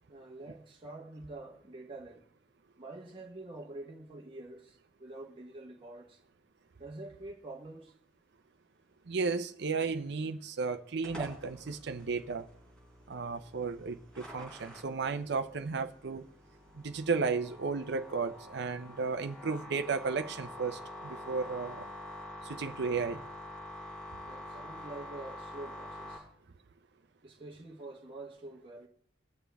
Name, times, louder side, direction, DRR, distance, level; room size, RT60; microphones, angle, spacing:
voice 1, 0.1-2.2 2.8-6.2 6.8-8.0 24.2-26.3 27.2-28.9, right 2 dB, 30° right, 1.2 m, -46 dB
voice 2, 9.1-12.5 13.1-16.3 16.8-21.9 22.4-23.2, right 4 dB, 60° right, 0.6 m, -34 dB
sound 1, 11.0-26.2, left 1 dB, 5° left, 4.2 m, -47 dB
20.5 x 7.2 x 3.4 m
head